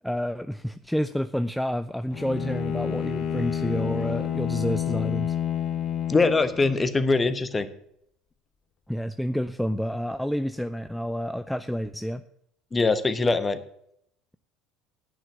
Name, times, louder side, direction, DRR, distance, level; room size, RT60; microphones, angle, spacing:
voice 1, 0.0-5.3 8.9-12.2, equal, ahead, 11 dB, 0.4 m, -29 dB
Bowed string instrument, 2.1-7.0, left 9 dB, 55° left, 1.1 m, -29 dB
voice 2, 6.1-7.7 12.7-13.6, left 3 dB, 25° left, 11 dB, 1.1 m, -22 dB
9.9 x 5.9 x 8.1 m, 0.73 s
hypercardioid pair, 70°, 0 cm